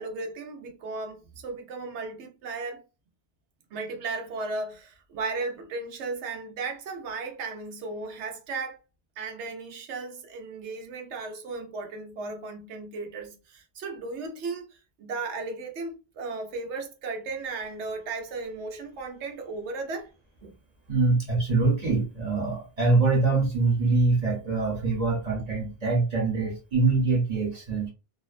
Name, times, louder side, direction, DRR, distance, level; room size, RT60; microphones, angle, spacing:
voice 1, 0.0-2.8 3.7-8.8 9.2-20.1, right 3 dB, 85° right, 0.9 m, -35 dB
voice 2, 20.9-27.9, right 3 dB, 40° right, 0.8 m, -24 dB
2.5 x 2.1 x 2.3 m
omnidirectional pair, 1.1 m